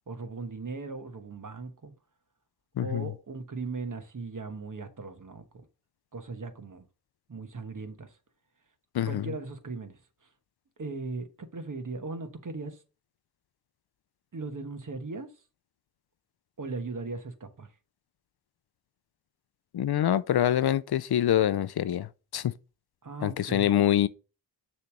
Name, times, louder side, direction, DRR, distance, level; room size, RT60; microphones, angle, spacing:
voice 1, 0.1-1.9 2.8-5.6 6.1-6.8 7.3-8.1 9.1-10.0 10.8-12.8 14.3-15.3 16.6-17.7 23.0-23.7, right 3 dB, 45° right, 1.2 m, -38 dB
voice 2, 2.8-3.1 8.9-9.3 19.7-22.5 23.2-24.1, left 11 dB, 65° left, 0.5 m, -25 dB
6.7 x 3.3 x 6.1 m
cardioid pair, 50°, 42 cm